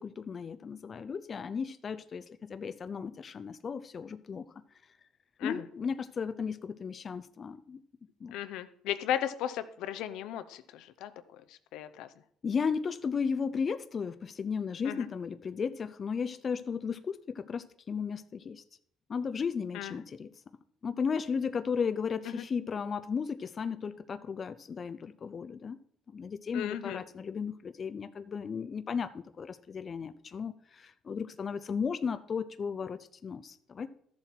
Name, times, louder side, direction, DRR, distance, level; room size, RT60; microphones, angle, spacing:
voice 1, 0.0-4.4 5.4-7.8 8.2-8.3 12.4-18.6 19.1-20.3 20.8-25.8 26.1-33.9, left 6 dB, 35° left, 11 dB, 0.6 m, -35 dB
voice 2, 8.3-12.1 14.8-15.1 19.7-20.0 22.2-22.4 26.5-27.0, left 11 dB, 80° left, 11 dB, 0.7 m, -36 dB
13.0 x 7.2 x 4.5 m, 0.65 s
cardioid pair, 110°, 0 cm